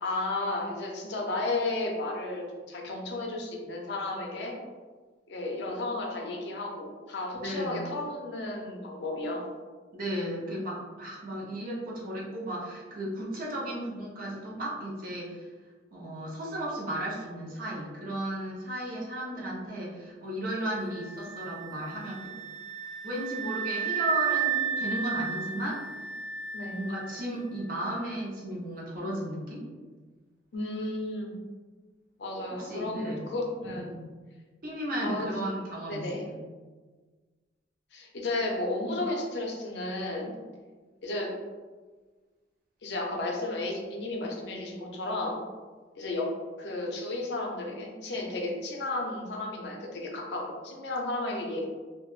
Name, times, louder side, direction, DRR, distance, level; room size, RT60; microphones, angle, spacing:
voice 1, 0.0-4.6 5.3-9.5 26.5-26.8 30.5-31.4 32.2-33.9 35.0-35.3 35.9-36.2 37.9-40.4 41.0-41.3 42.8-45.4 46.0-46.3 46.6-51.6, left 2 dB, 65° left, 0 dB, 0.5 m, -33 dB
voice 2, 7.3-7.8 9.9-15.5 15.9-22.3 23.0-25.8 26.7-29.6 32.5-33.2 33.7-34.1 34.6-36.4, right 1 dB, 50° right, -4 dB, 0.6 m, -34 dB
sound 1, 20.9-27.7, right 8 dB, ahead, 0.4 m, -33 dB
2.2 x 2.0 x 3.0 m, 1.4 s
head